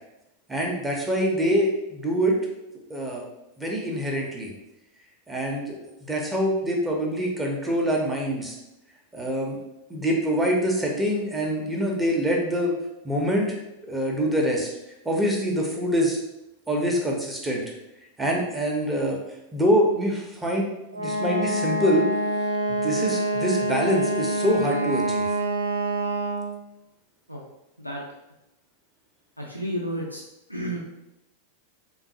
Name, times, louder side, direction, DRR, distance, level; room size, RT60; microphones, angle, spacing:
voice 1, 0.5-2.4 2.9-3.2 3.6-4.5 5.3-5.8 6.0-8.5 9.1-9.6 9.9-12.7 13.0-13.6 13.8-14.7 15.0-16.2 16.7-17.6 18.2-19.2 19.5-22.1 22.7-25.3, equal, 10° right, -1 dB, 0.7 m, -25 dB
voice 2, 16.7-17.0 27.3-27.4 27.8-28.0 29.4-30.2 30.5-30.8, equal, 90° left, -2 dB, 0.4 m, -32 dB
Wind instrument woodwind instrument, 20.9-26.6, right 2 dB, 75° right, 0.4 m, -26 dB
3.7 x 2.1 x 2.7 m, 0.90 s
figure-of-eight pair, 90°, 0 cm